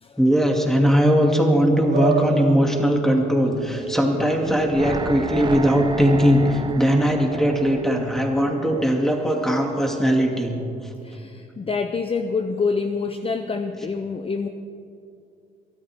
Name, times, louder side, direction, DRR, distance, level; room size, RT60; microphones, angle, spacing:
voice 1, 0.2-10.5, equal, ahead, 1 dB, 2.5 m, -19 dB
sound 1, 1.9-8.4, right 5 dB, 60° right, 1.8 m, -33 dB
sound 2, 4.4-9.6 9.9-10.0, right 3 dB, 25° right, 0.6 m, -32 dB
voice 2, 11.0-14.5, left 4 dB, 30° left, 8 dB, 0.6 m, -26 dB
23.0 x 13.0 x 3.6 m, 2.6 s
cardioid pair, 90°, 20 cm